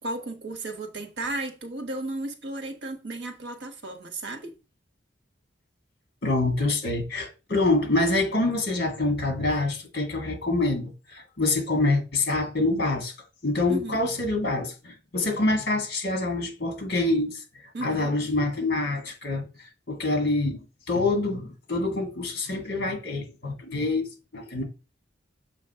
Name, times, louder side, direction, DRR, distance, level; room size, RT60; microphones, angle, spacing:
voice 1, 0.0-4.5 13.7-14.0 17.7-18.1, right 2 dB, 60° right, 1.2 m, -34 dB
voice 2, 6.2-13.1 13.4-17.4 17.8-24.1 24.3-24.6, left 2 dB, 55° left, 2.2 m, -26 dB
7.0 x 3.1 x 5.7 m
head